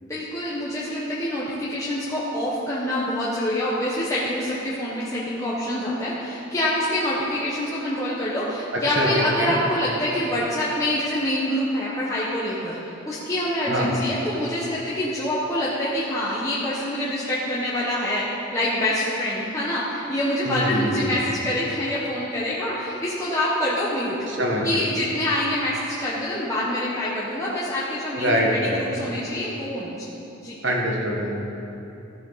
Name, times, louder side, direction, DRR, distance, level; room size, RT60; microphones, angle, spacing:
voice 1, 0.0-18.3 18.5-24.1 24.6-30.1 30.4-30.6, left 1 dB, 15° left, -8 dB, 1.0 m, -26 dB
voice 2, 8.9-9.5 13.7-13.9 20.4-21.2 24.3-24.9 28.2-29.0 30.6-31.3, equal, 60° right, -1 dB, 1.6 m, -24 dB
14.5 x 6.7 x 4.1 m, 2.9 s
head